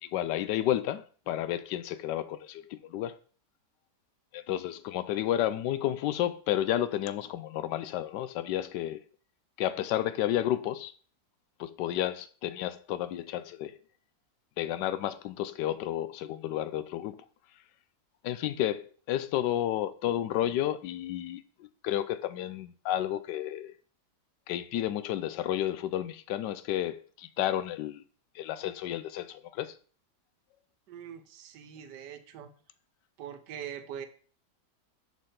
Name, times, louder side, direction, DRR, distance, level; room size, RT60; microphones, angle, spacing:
voice 1, 0.0-3.2 4.3-9.0 9.6-10.9 11.6-13.8 14.6-17.2 18.2-23.7 24.5-28.0 28.3-29.7, left 12 dB, 90° left, 1.2 m, -31 dB
voice 2, 30.9-32.5 33.2-34.1, right 9 dB, 80° right, 1.4 m, -42 dB
6.5 x 6.5 x 3.8 m
omnidirectional pair, 1.8 m